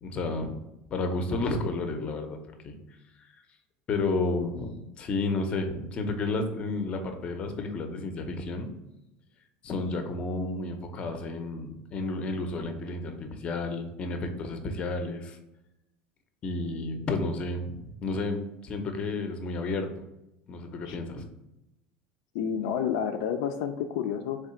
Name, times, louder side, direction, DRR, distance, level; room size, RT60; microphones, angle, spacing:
voice 1, 0.0-0.6 0.9-2.8 3.2-3.3 3.9-8.7 9.6-15.4 16.4-19.9 20.5-21.2, left 3 dB, 30° left, 6 dB, 0.6 m, -31 dB
voice 2, 22.3-24.4, left 8 dB, 75° left, 6 dB, 0.4 m, -30 dB
3.7 x 3.3 x 4.3 m, 0.90 s
cardioid pair, 150°, 4 cm